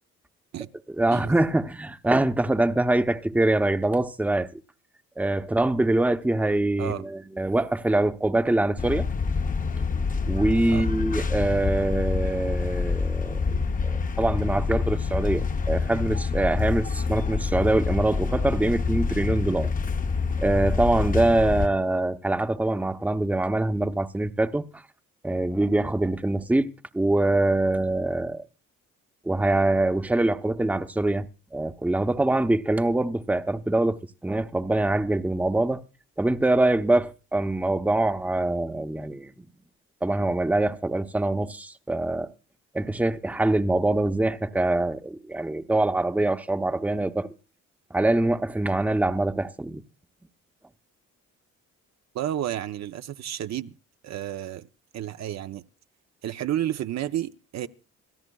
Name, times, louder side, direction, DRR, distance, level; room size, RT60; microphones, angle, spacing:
voice 1, 1.0-4.6 5.2-9.1 10.3-19.7 20.4-24.8 25.2-28.4 29.2-35.8 36.2-39.3 40.0-42.3 42.7-47.3 47.9-49.8, right 2 dB, 5° right, 0.7 m, -24 dB
sound 1, 8.8-21.7, left 4 dB, 30° left, 0.7 m, -27 dB
voice 2, 52.1-53.7 54.0-54.7 54.9-55.6 56.2-57.7, right 12 dB, 60° right, 0.7 m, -31 dB
27.0 x 13.5 x 2.3 m
cardioid pair, 90°, 30 cm